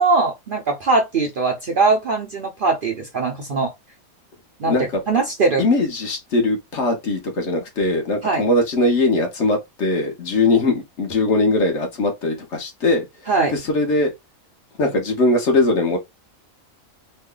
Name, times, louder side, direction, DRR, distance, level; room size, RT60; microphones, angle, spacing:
voice 1, 0.0-3.7 4.6-4.8 5.1-5.6 8.2-8.4 13.3-13.5, right 3 dB, 50° right, 0.6 m, -20 dB
voice 2, 5.6-13.0 13.5-14.1 14.8-16.0, left 2 dB, 55° left, 1.2 m, -20 dB
3.2 x 2.2 x 3.7 m
omnidirectional pair, 1.5 m